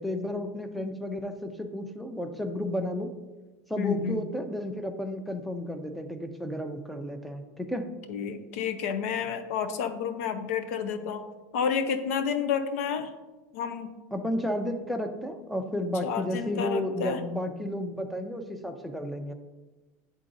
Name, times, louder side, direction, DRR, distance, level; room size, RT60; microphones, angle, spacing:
voice 1, 0.0-3.1 3.7-7.9 14.1-19.3, left 1 dB, ahead, 6 dB, 0.4 m, -32 dB
voice 2, 3.8-4.2 8.1-11.2 11.5-13.1 13.5-13.9 16.0-17.2, left 7 dB, 80° left, 9 dB, 0.6 m, -30 dB
10.0 x 3.8 x 2.6 m, 1.2 s
supercardioid pair, 150°, 8 cm